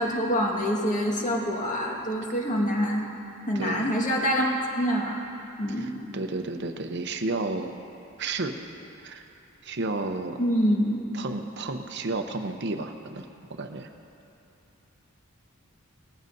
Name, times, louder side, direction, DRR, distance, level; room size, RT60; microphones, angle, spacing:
voice 1, 0.0-3.1 3.5-4.5 4.8-5.2 5.6-6.0 10.4-11.0, equal, 35° left, -2 dB, 1.7 m, -25 dB
voice 2, 3.5-3.9 5.8-7.8 8.2-8.6 9.0-9.2 9.6-10.4 11.1-13.9, right 2 dB, 55° right, 6 dB, 0.7 m, -32 dB
19.0 x 14.5 x 2.7 m, 2.7 s
head